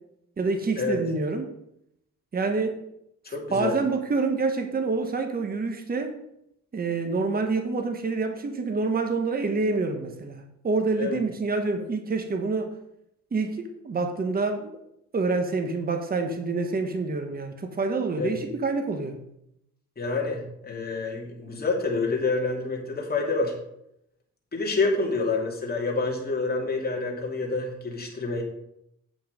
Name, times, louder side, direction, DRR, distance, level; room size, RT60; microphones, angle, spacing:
voice 1, 0.4-1.5 2.3-2.8 3.3-6.2 6.7-12.7 13.3-14.8 15.1-19.2, right 3 dB, 30° right, 5 dB, 1.3 m, -27 dB
voice 2, 3.3-3.7 11.0-11.2 18.2-18.4 20.0-23.5 24.5-28.4, left 3 dB, 30° left, 0 dB, 2.8 m, -27 dB
8.7 x 6.0 x 5.1 m, 0.78 s
cardioid pair, 90°, 30 cm